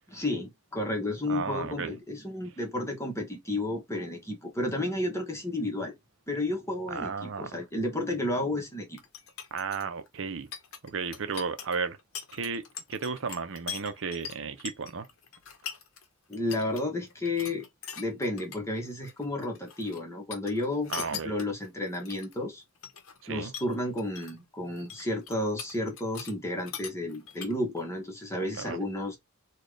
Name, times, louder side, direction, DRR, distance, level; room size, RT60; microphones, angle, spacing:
voice 1, 0.1-5.9 6.3-9.0 16.3-17.7 18.0-22.6 23.3-29.2, left 1 dB, 15° left, 1.1 m, -32 dB
voice 2, 1.3-1.9 6.9-7.5 9.5-10.5 10.8-12.0 12.3-15.1 20.9-21.3 23.2-23.5 28.5-28.8, right 5 dB, 60° right, 0.7 m, -34 dB
sound 1, 9.0-16.1 16.3-16.8 17.1-18.6 18.9-20.0 20.3-22.4 22.8-23.2 23.5-24.4 24.7-26.4 26.6-27.8, left 8 dB, 65° left, 0.8 m, -42 dB
4.2 x 2.4 x 3.2 m
head